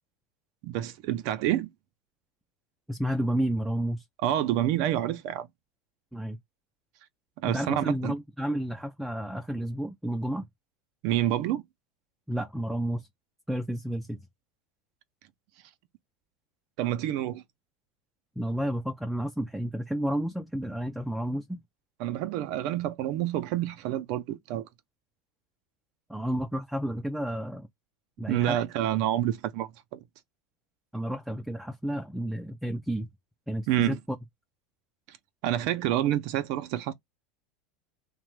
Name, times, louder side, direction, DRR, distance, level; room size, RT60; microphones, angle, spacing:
voice 1, 0.6-1.7 4.2-5.5 7.4-8.1 11.0-11.6 16.8-17.4 22.0-24.7 28.3-30.0 33.7-34.0 35.1-35.2 35.4-36.9, right 12 dB, 60° right, 0.4 m, -28 dB
voice 2, 2.9-4.0 6.1-6.4 7.4-10.5 12.3-13.1 13.5-14.2 18.4-21.6 26.1-27.7 28.2-28.6 30.9-33.1 33.5-34.2, equal, 5° right, 0.4 m, -31 dB
2.9 x 2.1 x 3.1 m
supercardioid pair, 125°, 0 cm